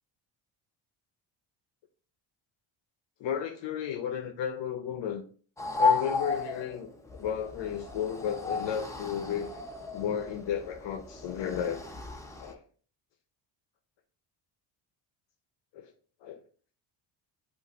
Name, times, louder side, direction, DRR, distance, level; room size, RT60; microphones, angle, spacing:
voice 1, 3.2-5.2 5.8-6.9 7.2-9.5 9.9-11.8 12.4-12.6 15.7-15.9 16.2-16.4, left 8 dB, 60° left, 5 dB, 0.7 m, -33 dB
sound 1, 5.6-12.5, left 4 dB, 5° left, 0.5 m, -33 dB
5.1 x 2.5 x 4.0 m, 0.43 s
cardioid pair, 130°, 49 cm